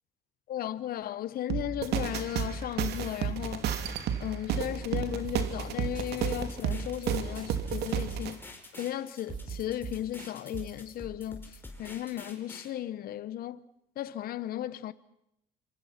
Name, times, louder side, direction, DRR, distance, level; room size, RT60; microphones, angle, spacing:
voice 1, 0.5-3.7 4.2-8.4 8.8-13.6 14.0-14.9, left 12 dB, 65° left, 1.0 m, -35 dB
sound 1, 1.5-8.3, right 8 dB, 75° right, 2.8 m, -32 dB
sound 2, 5.2-5.7 5.9-6.1 6.3-6.4 6.7-7.1 7.4-8.5 8.8-8.9 9.1-10.8, right 7 dB, 50° right, 7.3 m, -41 dB
sound 3, 5.9-12.7, left 2 dB, 10° left, 5.0 m, -48 dB
27.0 x 25.5 x 5.9 m
cardioid pair, 110°, 17 cm